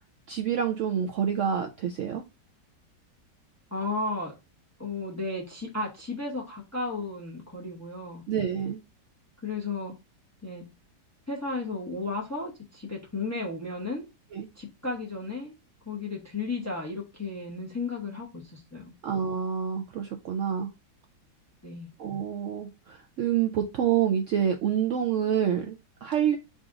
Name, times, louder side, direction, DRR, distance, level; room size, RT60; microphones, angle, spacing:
voice 1, 0.3-2.2 8.3-8.8 14.3-14.5 19.0-20.7 22.0-26.4, right 8 dB, 85° right, 0.6 m, -27 dB
voice 2, 3.7-4.3 4.8-8.2 9.4-9.9 10.4-10.6 11.3-14.0 14.5-15.5 15.9-18.9 21.6-21.9, left 3 dB, 15° left, 0.7 m, -34 dB
4.0 x 2.5 x 4.7 m
omnidirectional pair, 1.9 m